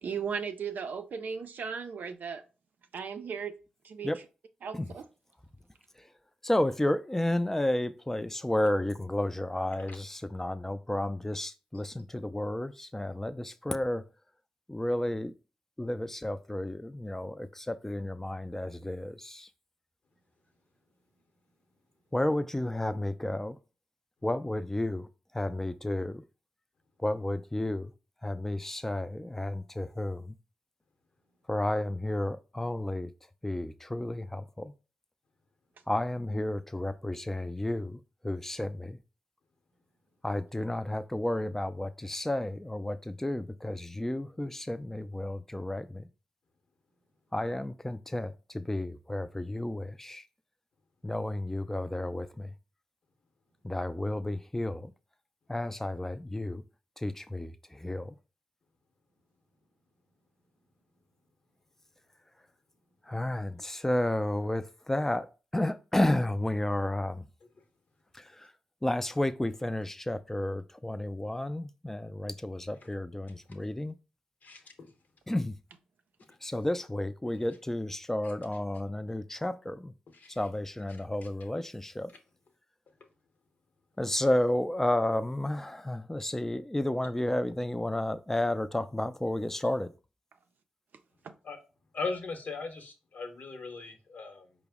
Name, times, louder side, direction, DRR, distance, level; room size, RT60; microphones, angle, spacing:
voice 1, 0.0-2.4 2.9-3.6 3.8-4.1 4.6-5.1 91.2-91.3, right 6 dB, 75° right, 0.4 m, -36 dB
voice 2, 6.4-14.0 14.7-15.3 15.8-19.5 22.1-23.6 24.2-25.1 25.3-26.2 27.0-27.9 28.2-30.4 31.5-33.1 33.4-34.7 35.9-39.0 40.2-46.1 47.3-50.2 51.0-52.5 53.6-54.9 55.5-56.6 57.0-58.1 63.1-65.3 65.5-67.3 68.1-68.5 68.8-74.0 75.3-75.5 76.4-79.9 80.3-82.1 84.0-89.9, left 1 dB, 10° left, 0.4 m, -32 dB
voice 3, 74.4-74.9 78.2-78.3 80.1-80.4 91.4-91.6 91.9-94.5, left 4 dB, 65° left, 0.9 m, -38 dB
4.7 x 2.0 x 3.5 m
supercardioid pair, 40°, 3 cm